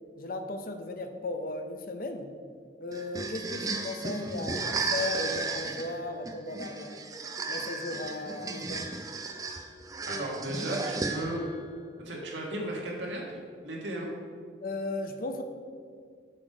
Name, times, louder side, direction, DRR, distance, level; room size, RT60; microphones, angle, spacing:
voice 1, 0.2-2.3 2.8-7.1 7.5-8.9 14.6-15.4, left 2 dB, 50° left, 7 dB, 0.6 m, -36 dB
sound 1, 2.9-11.5, right 3 dB, 20° right, 0.5 m, -34 dB
voice 2, 10.1-11.4 12.1-13.4 13.6-14.1, right 1 dB, 80° right, -2 dB, 1.8 m, -35 dB
7.6 x 6.4 x 4.9 m, 2.1 s
head